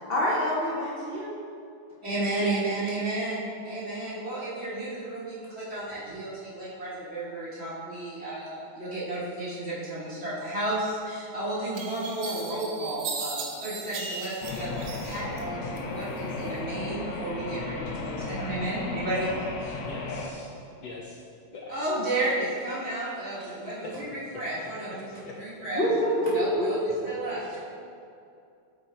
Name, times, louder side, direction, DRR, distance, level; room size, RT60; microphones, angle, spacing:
voice 1, 0.0-1.4 25.7-26.7, equal, 45° left, -7 dB, 0.8 m, -26 dB
voice 2, 2.0-19.8 21.7-25.1 25.4-25.9 26.3-26.8 27.0-27.6, right 2 dB, 35° right, -9 dB, 1.8 m, -32 dB
sound 1, 11.0-11.1 11.7-15.4 15.8-16.5, right 4 dB, 70° right, 1.4 m, -37 dB
sound 2, 14.4-20.3, left 3 dB, 85° left, 1.5 m, -35 dB
voice 3, 19.8-20.5 20.8-21.2 21.5-21.7 22.2-22.3 23.3-23.6 25.3-25.4, left 3 dB, 65° left, -3 dB, 1.2 m, -43 dB
8.4 x 4.1 x 4.3 m, 2.5 s
omnidirectional pair, 2.2 m